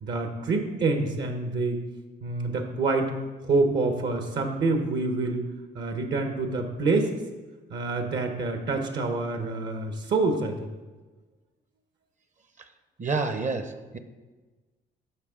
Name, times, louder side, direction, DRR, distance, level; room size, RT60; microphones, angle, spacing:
voice 1, 0.0-1.8 2.2-3.1 3.4-5.5 5.7-7.1 7.7-10.5, right 3 dB, 65° right, 5 dB, 1.1 m, -26 dB
voice 2, 13.0-14.0, right 4 dB, 40° right, 9 dB, 0.7 m, -29 dB
12.5 x 5.4 x 3.7 m, 1.3 s
cardioid pair, 90°, 20 cm